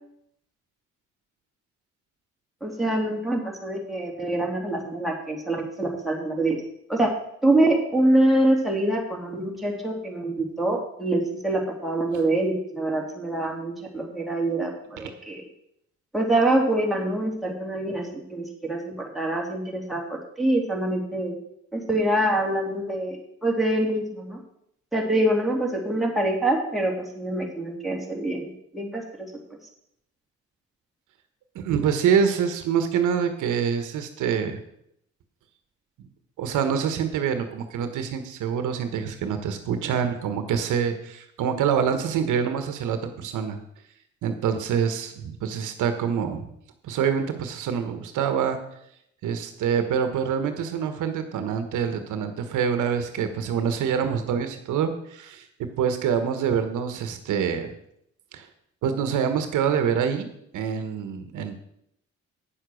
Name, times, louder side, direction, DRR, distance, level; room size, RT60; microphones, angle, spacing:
voice 1, 2.6-6.6 6.9-7.1 7.4-15.4 16.1-21.4 21.7-24.4 24.9-29.3, right 1 dB, ahead, -2 dB, 2.9 m, -25 dB
voice 2, 31.5-34.6 36.4-43.6 44.2-46.5 46.8-48.6 49.2-57.7 58.3-58.5 58.8-60.3 60.5-61.5, right 7 dB, 80° right, 8 dB, 1.3 m, -26 dB
9.5 x 6.9 x 6.3 m, 0.75 s
cardioid pair, 90°, 30 cm